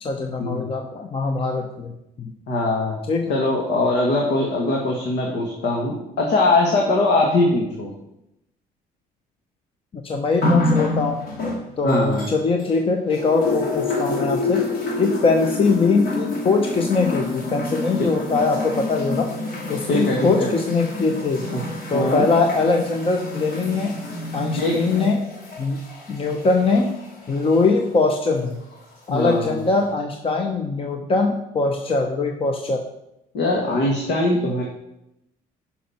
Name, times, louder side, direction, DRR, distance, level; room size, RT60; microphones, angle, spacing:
voice 1, 0.0-2.3 3.1-3.3 9.9-11.2 11.8-14.6 15.0-19.3 19.7-21.5 21.9-24.0 24.3-25.2 25.6-25.8 26.1-26.9 27.3-28.6 29.1-32.8, left 3 dB, 30° left, 4 dB, 0.9 m, -22 dB
voice 2, 2.5-3.0 3.3-7.9 11.8-12.3 19.9-20.5 21.9-22.3 24.6-24.8 29.1-29.6 33.3-34.6, left 2 dB, 80° left, -1 dB, 1.8 m, -21 dB
sound 1, 10.4-12.8 13.1-27.8 28.7-28.8, left 2 dB, 65° left, 2.9 m, -28 dB
10.0 x 5.5 x 5.8 m, 0.85 s
cardioid pair, 110°, 17 cm